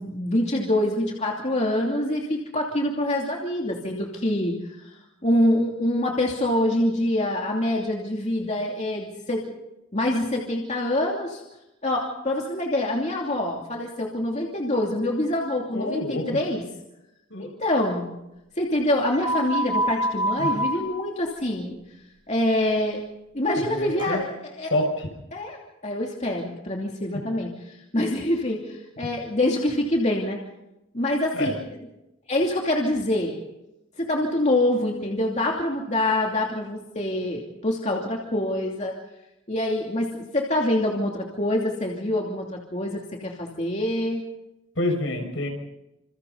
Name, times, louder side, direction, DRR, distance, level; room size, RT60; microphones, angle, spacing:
voice 1, 0.0-4.9 5.2-9.6 9.9-11.4 11.8-16.6 17.4-18.1 18.6-21.8 22.3-23.0 23.3-24.7 25.3-30.4 30.9-31.5 32.3-33.4 34.0-39.0 39.5-44.2, left 1 dB, 35° left, -1 dB, 2.8 m, -25 dB
voice 2, 15.7-16.4 17.3-17.5 20.4-20.5 23.6-24.2 24.7-25.1 31.3-31.6 44.8-45.5, left 1 dB, 65° left, 4 dB, 6.1 m, -27 dB
sound 1, 19.1-21.1 24.0-24.1, right 1 dB, 25° right, 5.5 m, -26 dB
28.0 x 27.5 x 4.0 m, 0.90 s
head